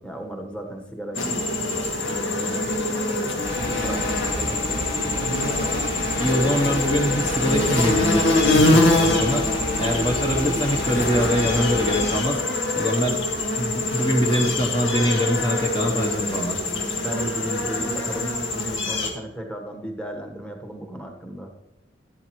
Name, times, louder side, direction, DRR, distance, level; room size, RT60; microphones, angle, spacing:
voice 1, 0.0-2.8 3.2-5.3 16.9-21.5, right 1 dB, 5° left, 3 dB, 1.3 m, -35 dB
sound 1, 1.1-19.1, left 2 dB, 90° left, 1.8 m, -24 dB
sound 2, 3.4-12.2, equal, 45° left, 2.1 m, -31 dB
voice 2, 6.2-9.5 9.8-12.4 12.8-13.2 13.6-16.6, equal, 25° left, 0 dB, 1.0 m, -24 dB
12.5 x 11.0 x 3.1 m, 0.97 s
head